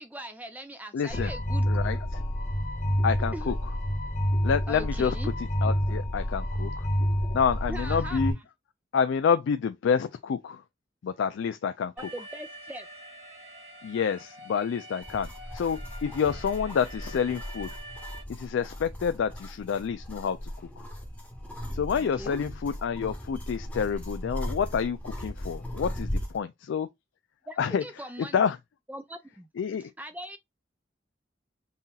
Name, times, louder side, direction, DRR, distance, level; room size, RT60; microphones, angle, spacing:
voice 1, 0.0-1.6 3.3-3.6 4.7-5.3 7.7-8.2 12.0-12.9 16.7-16.8 21.9-22.4 27.5-28.4 28.9-29.5 29.8-30.4, right 1 dB, 10° right, 0.3 m, -40 dB
voice 2, 0.9-1.3 1.7-2.2 3.0-3.5 4.4-5.3 5.6-6.9 7.3-8.4 8.9-10.6 11.0-11.9 13.8-17.7 18.3-20.5 21.7-26.9 27.6-27.8 28.3-28.6 29.6-29.9, left 6 dB, 85° left, 0.3 m, -28 dB
sound 1, 1.1-8.3, equal, 40° left, 0.7 m, -28 dB
Alarm, 12.0-18.2, right 1 dB, 65° right, 2.1 m, -46 dB
sound 2, 15.0-26.4, equal, 5° left, 0.9 m, -38 dB
5.5 x 2.8 x 2.3 m
head